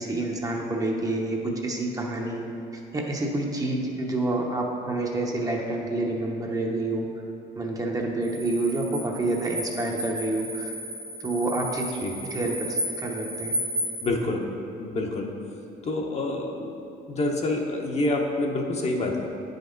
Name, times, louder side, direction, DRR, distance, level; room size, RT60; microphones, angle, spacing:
voice 1, 0.0-2.4 2.7-7.1 7.6-10.7 11.2-11.9 12.3-13.6 16.6-16.7, right 2 dB, 20° right, 0 dB, 0.9 m, -28 dB
sound 1, 8.2-14.1, equal, 60° right, 1.8 m, -33 dB
voice 2, 14.0-14.5 14.8-15.3 15.8-16.6 17.1-19.3, left 2 dB, 40° left, 1 dB, 0.9 m, -27 dB
9.2 x 5.2 x 3.9 m, 2.8 s
cardioid pair, 110°, 17 cm